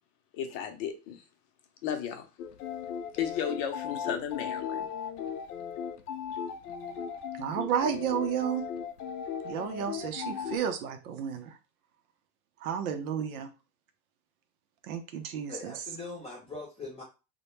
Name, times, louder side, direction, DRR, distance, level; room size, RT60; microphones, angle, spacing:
voice 1, 0.3-1.2 1.8-2.3 3.2-4.9, left 8 dB, 50° left, 0.7 m, -34 dB
sound 1, 2.4-10.6, left 7 dB, 90° left, 0.5 m, -37 dB
voice 2, 7.4-8.7 9.4-11.6 12.6-13.5 14.9-15.7, right 8 dB, 70° right, 0.6 m, -32 dB
voice 3, 15.5-17.0, left 3 dB, 15° left, 0.7 m, -41 dB
2.2 x 2.1 x 3.1 m
hypercardioid pair, 115°, 45 cm